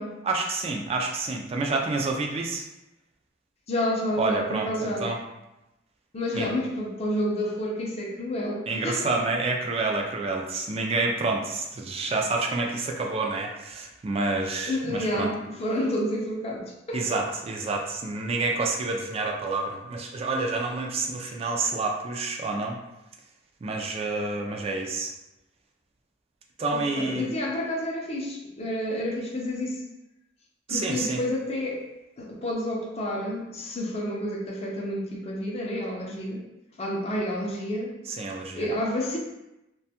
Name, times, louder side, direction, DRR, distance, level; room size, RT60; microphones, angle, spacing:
voice 1, 0.2-2.6 4.2-5.2 6.3-6.5 8.7-15.3 16.9-22.8 23.6-25.1 26.6-27.3 30.7-31.2 38.1-38.6, right 3 dB, 35° right, 1 dB, 0.3 m, -28 dB
voice 2, 3.7-5.1 6.1-9.1 14.7-17.0 26.7-29.8 30.7-31.8 32.2-36.4 36.8-38.0 38.5-39.2, left 1 dB, 35° left, -1 dB, 0.5 m, -29 dB
2.5 x 2.2 x 2.7 m, 0.93 s
head